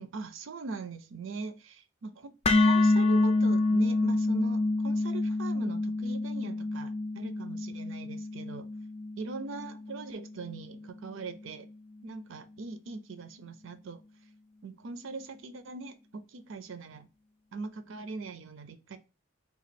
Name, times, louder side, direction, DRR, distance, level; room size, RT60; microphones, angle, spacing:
voice 1, 0.0-8.7 9.2-11.7 12.0-14.0 14.6-17.1 17.5-19.0, right 4 dB, 75° right, 0.5 m, -41 dB
sound 1, 2.4-10.6, left 2 dB, 30° left, 0.3 m, -27 dB
3.0 x 2.4 x 4.1 m
head